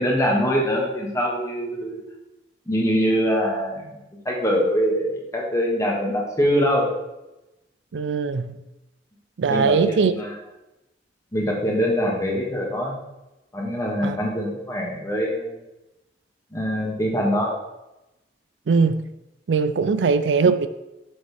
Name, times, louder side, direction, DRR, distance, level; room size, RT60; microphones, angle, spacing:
voice 1, 0.0-2.0 2.7-4.0 4.2-6.9 9.5-10.3 11.3-13.0 13.5-15.6 16.5-17.5 19.8-20.0, equal, 20° left, 1.6 m, -23 dB
voice 2, 7.9-8.5 9.4-10.1 14.0-14.2 18.7-19.0 19.5-20.7, right 5 dB, 90° right, 0.4 m, -20 dB
7.0 x 6.4 x 3.4 m
head